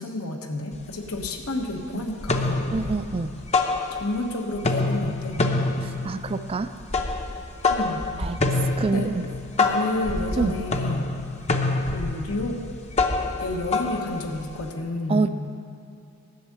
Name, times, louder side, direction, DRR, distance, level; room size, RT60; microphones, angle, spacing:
voice 1, 0.0-2.7 3.9-5.4 7.7-8.0 8.9-9.1 9.6-11.1 11.8-12.6 13.4-15.3, left 2 dB, 85° left, 3 dB, 1.2 m, -30 dB
sound 1, 0.7-0.8 1.2-1.8 2.1-4.3 4.5-14.7, left 3 dB, 30° left, 0.7 m, -26 dB
voice 2, 2.7-3.3 5.8-6.7 8.2-9.2 10.4-10.5 15.1-15.3, right 3 dB, 25° right, 10 dB, 0.3 m, -26 dB
12.0 x 6.5 x 8.5 m, 2.6 s
head